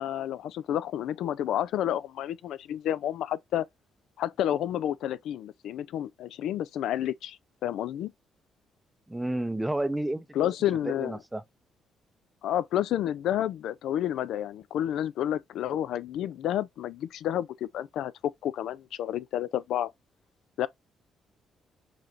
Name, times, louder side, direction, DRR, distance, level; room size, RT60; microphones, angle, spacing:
voice 1, 0.0-3.7 4.2-8.1 10.4-11.2 12.4-19.9 20.6-20.7, left 11 dB, 80° left, 0.3 m, -30 dB
voice 2, 9.1-10.3 10.9-11.4, right 1 dB, 10° right, 0.5 m, -30 dB
4.8 x 3.2 x 2.5 m
cardioid pair, 90°, 0 cm